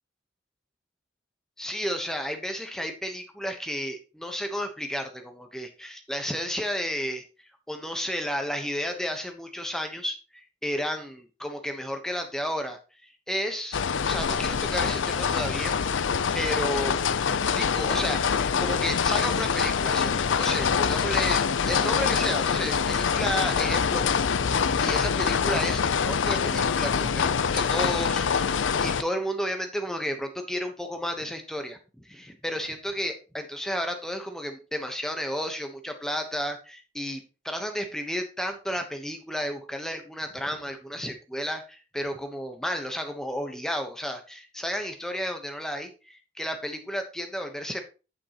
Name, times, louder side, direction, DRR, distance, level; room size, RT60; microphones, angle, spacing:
voice 1, 1.6-7.2 7.7-10.2 10.6-13.8 14.1-15.7 16.1-16.9 17.6-24.3 24.8-31.8 32.0-47.8, equal, 5° left, 5 dB, 1.0 m, -32 dB
sound 1, 13.7-29.0, left 6 dB, 70° left, 0.5 m, -25 dB
8.9 x 8.2 x 3.0 m, 0.32 s
head